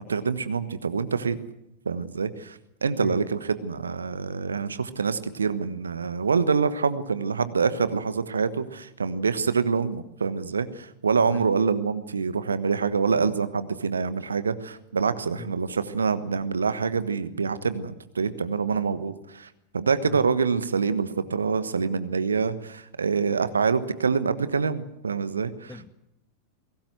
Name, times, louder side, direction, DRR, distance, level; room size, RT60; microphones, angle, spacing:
voice 1, 0.0-1.4 1.8-25.8, right 5 dB, 75° right, 13 dB, 1.3 m, -26 dB
voice 2, 3.0-3.2 11.3-11.5 15.4-15.5 20.1-20.3 25.7-25.9, left 2 dB, 10° left, 13 dB, 1.2 m, -39 dB
22.0 x 18.0 x 8.0 m, 0.83 s
figure-of-eight pair, 90°, 0 cm